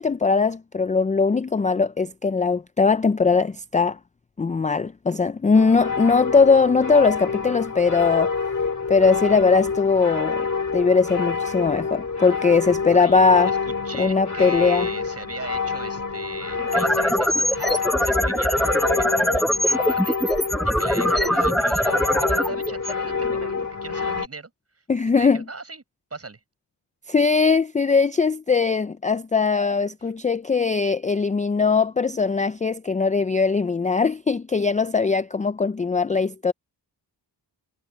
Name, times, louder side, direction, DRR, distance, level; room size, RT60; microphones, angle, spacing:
voice 1, 0.0-4.0 4.4-8.3 8.9-10.5 10.7-13.5 14.0-14.9 24.9-25.4 27.1-36.5, left 4 dB, 20° left, 0.3 m, -20 dB
sound 1, 5.5-24.3, left 5 dB, 45° left, 4.2 m, -27 dB
voice 2, 12.9-24.8 25.1-25.8 26.1-26.4 30.0-30.1, right 3 dB, 35° right, 7.0 m, -39 dB
sound 2, 16.5-23.6, equal, ahead, 0.8 m, -23 dB
wide cardioid pair, 140°, 41 cm